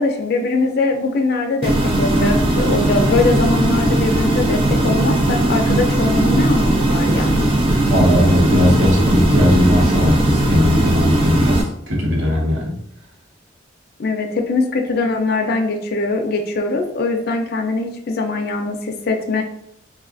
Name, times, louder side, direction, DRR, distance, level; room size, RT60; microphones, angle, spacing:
voice 1, 0.0-7.5 14.0-19.4, left 3 dB, 50° left, 3 dB, 0.4 m, -21 dB
sound 1, 1.6-11.6, right 1 dB, 30° right, 0.4 m, -17 dB
voice 2, 7.9-12.8, left 1 dB, 70° right, -2 dB, 1.0 m, -18 dB
3.5 x 2.3 x 2.4 m, 0.72 s
head